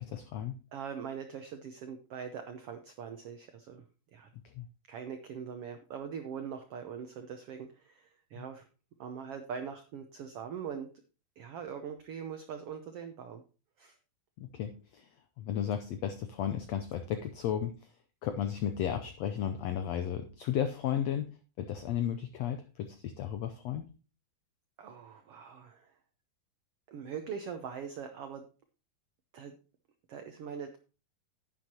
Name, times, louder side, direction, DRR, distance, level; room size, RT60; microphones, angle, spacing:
voice 1, 0.0-0.6 4.6-4.7 8.3-8.4 14.4-15.1 15.4-17.7 18.2-21.3 21.6-23.8, left 9 dB, 90° left, 9 dB, 1.4 m, -34 dB
voice 2, 0.7-3.8 4.1-4.3 4.9-8.6 9.0-10.9 11.4-13.4 13.8-14.0 24.8-25.9 26.9-28.5 29.3-29.5 30.1-30.8, right 7 dB, 85° right, 7 dB, 1.3 m, -42 dB
10.5 x 9.3 x 2.9 m, 0.35 s
omnidirectional pair, 3.8 m